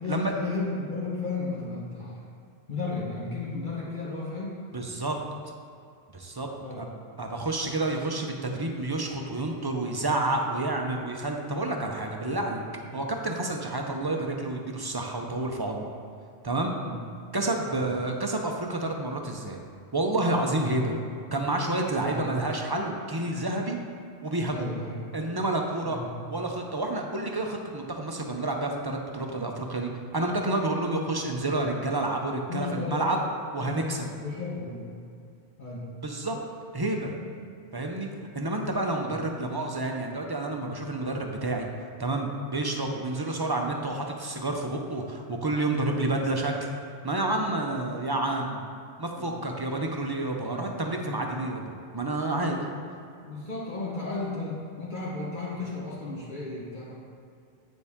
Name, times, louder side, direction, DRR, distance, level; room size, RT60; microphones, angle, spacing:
voice 1, 0.0-2.2 2.7-4.6 6.6-6.9 11.8-11.9 12.8-12.9 16.8-17.0 17.6-17.9 22.0-22.3 24.5-25.1 25.8-26.1 32.5-33.1 33.6-34.8 35.6-35.8 37.2-37.3 39.0-39.1 49.2-49.3 50.4-50.7 53.2-57.0, left 3 dB, 50° left, -6 dB, 1.3 m, -34 dB
voice 2, 4.7-5.2 6.1-6.5 6.8-6.9 7.2-12.7 12.9-15.9 16.4-16.7 17.3-19.6 19.9-21.0 21.3-23.8 24.2-24.7 25.1-26.0 26.3-33.2 33.5-34.1 36.0-36.4 36.7-37.1 37.7-38.1 38.3-41.7 42.0-46.5 47.0-48.6 49.0-52.6, right 2 dB, 25° right, 2 dB, 0.6 m, -29 dB
8.2 x 6.8 x 3.6 m, 2.4 s
omnidirectional pair, 1.1 m